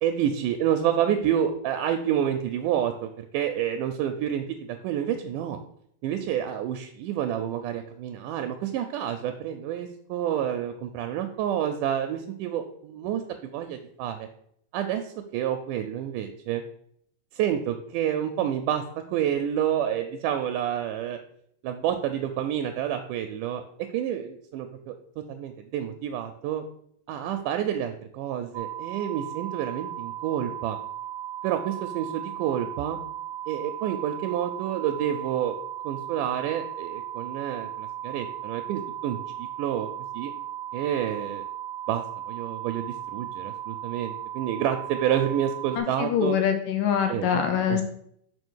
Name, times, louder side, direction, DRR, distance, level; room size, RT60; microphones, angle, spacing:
voice 1, 0.0-5.6 6.0-14.3 14.7-16.6 17.3-21.2 21.6-23.6 23.9-26.7 27.1-30.8 31.4-33.0 33.5-35.5 35.8-39.9 40.1-40.3 40.7-41.4 41.9-46.4 47.1-47.4 47.7-47.8, right 10 dB, 80° right, 7 dB, 2.0 m, -29 dB
sound 1, 28.5-45.8, right 11 dB, 60° right, 1.6 m, -36 dB
voice 2, 45.8-47.8, left 8 dB, 80° left, 5 dB, 2.6 m, -24 dB
5.2 x 5.1 x 6.2 m, 0.69 s
omnidirectional pair, 3.9 m